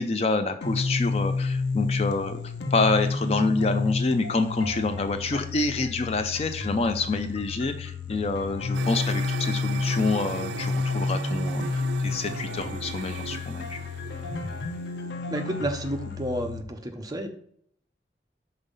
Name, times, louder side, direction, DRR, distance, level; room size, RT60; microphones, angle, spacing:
voice 1, 0.0-13.8, left 3 dB, 35° left, 8 dB, 0.4 m, -27 dB
sound 1, 0.6-16.6, left 3 dB, 80° left, 0.6 m, -30 dB
sound 2, 8.7-15.1, right 6 dB, 80° right, 0.3 m, -38 dB
voice 2, 15.3-17.3, right 1 dB, 20° right, 4 dB, 0.6 m, -31 dB
5.4 x 4.0 x 5.3 m, 0.64 s
head